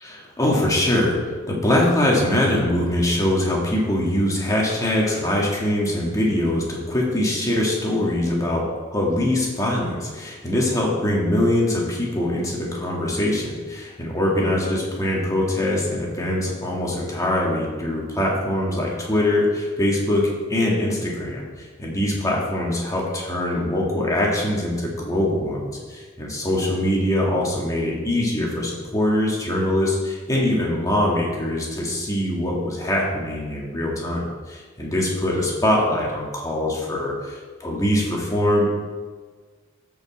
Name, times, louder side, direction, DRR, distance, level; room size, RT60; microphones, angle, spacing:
voice 1, 0.0-1.2 1.5-38.7, left 1 dB, 15° left, -3 dB, 2.0 m, -23 dB
13.5 x 5.5 x 4.2 m, 1.4 s
head